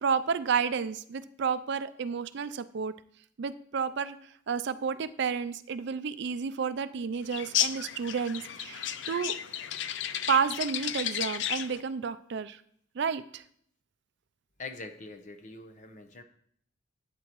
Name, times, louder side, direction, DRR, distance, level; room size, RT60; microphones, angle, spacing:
voice 1, 0.0-2.9 3.4-4.2 4.5-9.3 10.3-12.6 13.0-13.4, right 6 dB, 60° right, 14 dB, 0.4 m, -31 dB
sound 1, 7.3-11.8, left 10 dB, 65° left, 0.4 m, -33 dB
voice 2, 14.6-16.2, left 3 dB, 40° left, 7 dB, 0.9 m, -43 dB
12.0 x 8.2 x 3.0 m, 0.65 s
head